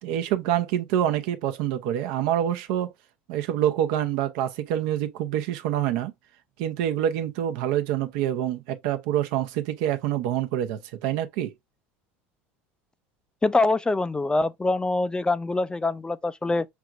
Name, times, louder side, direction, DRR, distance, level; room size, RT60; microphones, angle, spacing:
voice 1, 0.0-2.9 3.3-6.1 6.6-11.5, right 11 dB, 70° right, 0.8 m, -26 dB
voice 2, 13.4-16.7, left 2 dB, 15° left, 0.3 m, -24 dB
4.8 x 3.5 x 2.5 m
supercardioid pair, 95°, 6 cm